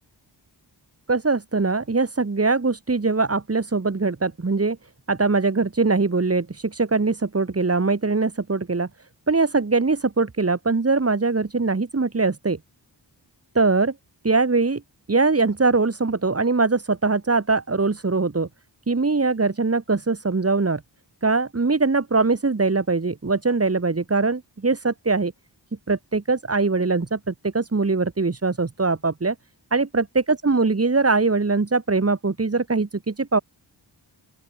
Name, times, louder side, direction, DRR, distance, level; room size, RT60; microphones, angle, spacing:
voice 1, 1.1-4.8 5.1-8.9 9.3-12.6 13.5-13.9 14.2-14.8 15.1-18.5 18.9-20.8 21.2-25.3 25.9-29.3 29.7-33.4, right 3 dB, 30° right, 1.8 m, -22 dB
open air
wide cardioid pair, 90°, 45 cm